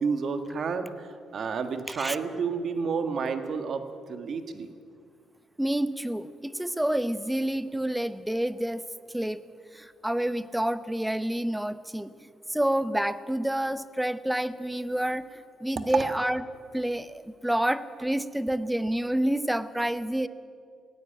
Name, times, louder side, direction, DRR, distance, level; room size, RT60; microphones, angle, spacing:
voice 1, 0.0-4.7 15.9-16.0, right 5 dB, 55° right, 8 dB, 1.7 m, -30 dB
voice 2, 5.6-8.8 9.1-9.4 9.7-12.1 12.5-15.3 15.6-16.4 16.7-20.3, right 1 dB, 5° right, 14 dB, 0.8 m, -28 dB
17.5 x 17.0 x 9.1 m, 2.2 s
cardioid pair, 90°, 0 cm